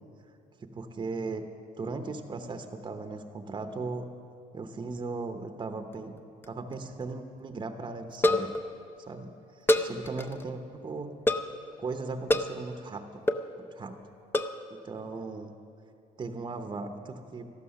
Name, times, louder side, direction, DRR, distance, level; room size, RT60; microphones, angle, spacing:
voice 1, 0.6-1.4 1.8-4.1 4.5-6.1 6.5-8.5 9.0-11.1 11.8-13.0 13.6-13.9 14.8-15.5 16.2-17.5, right 3 dB, 25° right, 7 dB, 0.8 m, -37 dB
sound 1, 5.9-6.5 6.7-6.8 7.0-7.1 8.1-8.7 9.7-10.4 11.3-11.6 12.3-12.6 13.3-13.5 14.3-14.6, left 1 dB, 15° left, 0.5 m, -26 dB
13.5 x 11.5 x 6.5 m, 2.6 s
cardioid pair, 110°, 17 cm